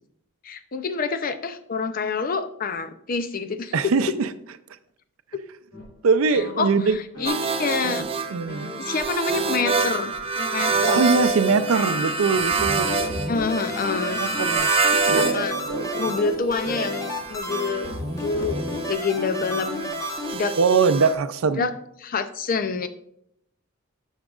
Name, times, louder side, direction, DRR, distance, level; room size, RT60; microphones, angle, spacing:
voice 1, 0.4-3.9 6.3-8.1 8.8-11.0 13.3-14.2 15.1-15.6 16.0-18.6 18.9-19.7 20.3-20.6 21.6-21.7 22.0-22.9, left 4 dB, 45° left, 11 dB, 0.5 m, -27 dB
voice 2, 3.7-4.3 6.0-7.0 7.8-8.7 10.9-12.9 14.2-14.7 15.1-16.2 20.6-21.7, right 4 dB, 90° right, 12 dB, 0.5 m, -22 dB
sound 1, 5.7-6.0 6.3-10.2 10.7-14.7 15.1-19.0 19.4-19.9, left 1 dB, 75° left, 3.1 m, -38 dB
sound 2, 7.3-15.4 15.7-21.1, right 4 dB, 30° right, 0.5 m, -26 dB
sound 3, 12.5-20.3, left 1 dB, 15° left, 1.0 m, -32 dB
9.8 x 6.4 x 2.4 m, 0.72 s
head